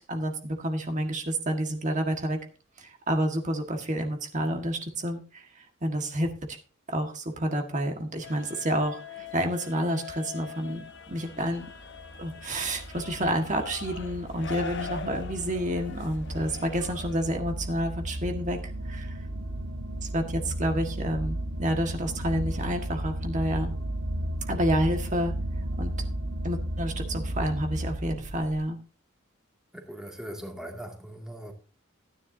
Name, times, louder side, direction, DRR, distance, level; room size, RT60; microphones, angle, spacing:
voice 1, 0.1-2.4 2.8-5.5 5.8-6.6 6.9-11.7 12.2-19.2 20.0-23.7 24.5-25.3 25.8-25.9 26.4-28.8, equal, 35° right, 1.6 m, -29 dB
sound 1, 8.2-17.3, left 6 dB, 55° left, 1.0 m, -42 dB
sound 2, 11.1-28.6, right 1 dB, 65° right, 1.4 m, -34 dB
voice 2, 29.7-31.5, equal, 5° right, 2.1 m, -40 dB
15.5 x 10.0 x 2.7 m
head